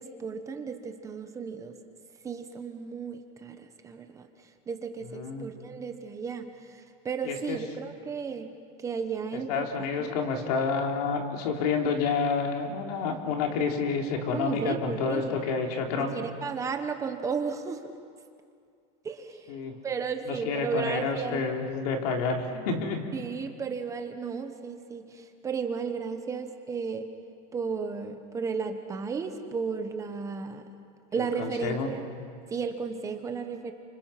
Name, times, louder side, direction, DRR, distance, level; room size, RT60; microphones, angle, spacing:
voice 1, 0.0-1.8 2.2-4.3 4.7-8.5 8.8-9.7 10.0-10.2 14.3-15.4 16.0-17.8 19.0-19.5 19.8-21.4 22.5-22.7 23.1-27.1 27.5-30.7 31.1-32.0 32.5-33.7, right 5 dB, 15° right, 6 dB, 1.1 m, -34 dB
voice 2, 5.1-5.5 7.2-7.6 9.5-16.1 19.5-19.7 20.3-23.0 31.4-31.9, left 5 dB, 75° left, 2 dB, 3.5 m, -29 dB
30.0 x 26.0 x 5.8 m, 2.3 s
cardioid pair, 175°, 20 cm